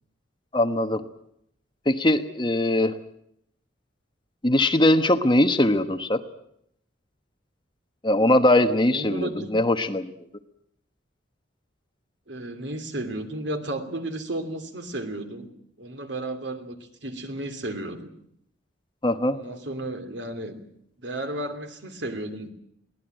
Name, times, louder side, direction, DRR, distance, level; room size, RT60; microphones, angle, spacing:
voice 1, 0.5-1.0 1.9-3.0 4.4-6.2 8.0-10.1 19.0-19.4, left 1 dB, 25° left, 8 dB, 1.2 m, -21 dB
voice 2, 8.5-9.5 12.3-15.5 15.8-18.1 19.3-20.6 21.0-22.5, right 1 dB, 65° right, 8 dB, 2.8 m, -33 dB
23.0 x 17.0 x 9.0 m, 0.74 s
head